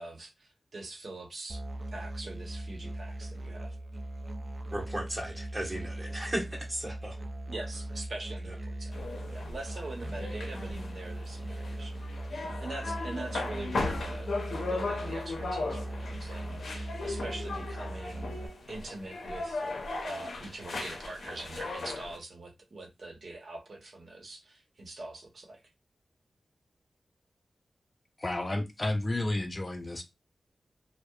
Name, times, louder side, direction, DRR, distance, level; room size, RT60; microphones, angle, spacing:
voice 1, 0.0-1.6 1.9-3.8 7.5-9.0 9.3-11.9 12.3-18.4 18.7-19.6 20.0-25.6, right 2 dB, 65° right, 0.9 m, -43 dB
Musical instrument, 1.5-18.5, right 1 dB, 40° right, 0.4 m, -39 dB
voice 2, 4.7-7.2, right 1 dB, 20° right, 1.1 m, -35 dB
sound 1, 8.9-22.2, left 3 dB, 85° left, 0.5 m, -37 dB
voice 3, 28.2-30.0, left 2 dB, 35° left, 0.5 m, -31 dB
2.7 x 2.1 x 2.2 m
cardioid pair, 45°, 0 cm